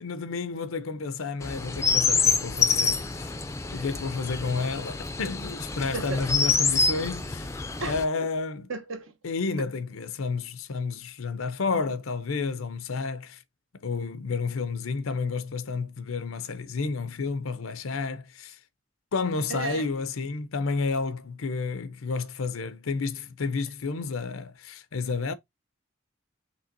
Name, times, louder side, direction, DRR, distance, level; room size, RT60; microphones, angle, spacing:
voice 1, 0.0-3.3 3.7-7.5 7.8-8.7 9.2-13.4 13.8-18.6 19.1-25.3, left 4 dB, 90° left, 0.6 m, -31 dB
Chirp tweet, 1.4-8.0, left 5 dB, 15° left, 0.4 m, -27 dB
voice 2, 8.7-9.1 19.5-19.8, right 3 dB, 80° right, 1.0 m, -33 dB
5.5 x 3.3 x 2.6 m
head